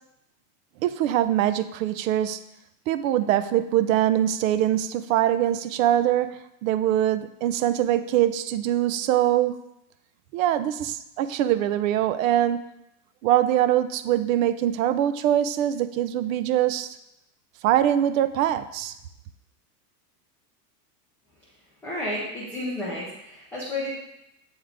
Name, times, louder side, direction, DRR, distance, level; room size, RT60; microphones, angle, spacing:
voice 1, 0.8-2.4 2.9-9.5 10.3-12.6 13.2-17.0 17.6-18.9, right 11 dB, 60° right, 13 dB, 0.5 m, -23 dB
voice 2, 21.8-23.9, left 1 dB, 5° left, -8 dB, 0.3 m, -31 dB
8.0 x 3.6 x 3.5 m, 0.85 s
supercardioid pair, 150°, 47 cm